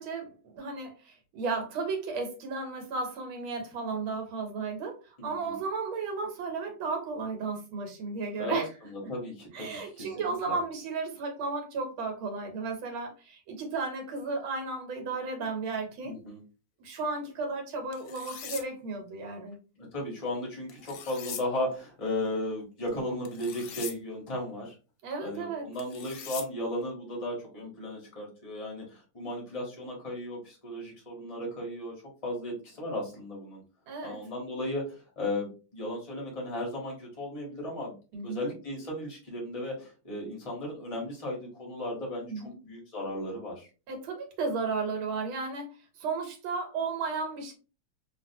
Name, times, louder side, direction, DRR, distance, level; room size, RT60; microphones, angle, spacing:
voice 1, 0.0-8.7 9.5-16.2 16.8-19.6 25.0-25.7 33.9-34.2 38.1-38.4 42.3-42.6 43.9-45.7 46.0-47.5, right 4 dB, 80° right, 4 dB, 1.6 m, -34 dB
voice 2, 5.2-5.5 8.4-10.6 16.0-16.4 19.8-24.7 25.2-31.9 32.2-33.6 34.0-37.9 38.2-43.7, left 1 dB, 25° left, -2 dB, 0.7 m, -35 dB
Sharpen Knife, 17.9-18.6 20.7-21.4 23.2-24.0 25.8-26.4, left 8 dB, 75° left, 1.2 m, -41 dB
2.9 x 2.7 x 2.6 m, 0.33 s
omnidirectional pair, 2.2 m